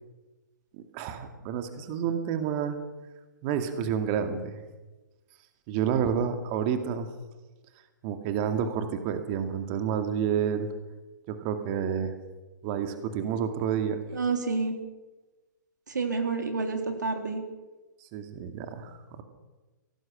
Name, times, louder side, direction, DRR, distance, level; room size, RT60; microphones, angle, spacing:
voice 1, 0.9-2.8 3.4-4.6 5.7-7.1 8.0-10.7 11.3-12.1 12.6-14.0 18.0-19.2, right 8 dB, 30° right, 7 dB, 2.2 m, -29 dB
voice 2, 14.1-14.8 15.9-17.4, right 4 dB, 65° right, 5 dB, 3.7 m, -29 dB
24.5 x 18.0 x 6.4 m, 1.2 s
figure-of-eight pair, 125°, 11 cm